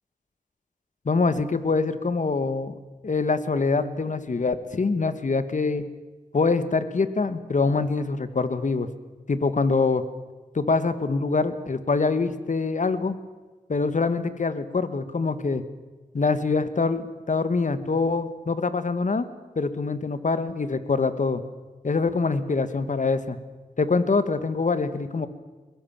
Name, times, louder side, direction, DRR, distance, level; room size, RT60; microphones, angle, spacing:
voice 1, 1.1-2.7 3.0-5.9 6.3-8.9 9.3-10.0 10.5-13.2 13.7-15.6 16.1-19.3 19.6-21.4 21.8-23.4 23.8-25.3, left 4 dB, 55° left, 12 dB, 1.7 m, -24 dB
22.0 x 21.0 x 7.4 m, 1.3 s
cardioid pair, 50°, 15 cm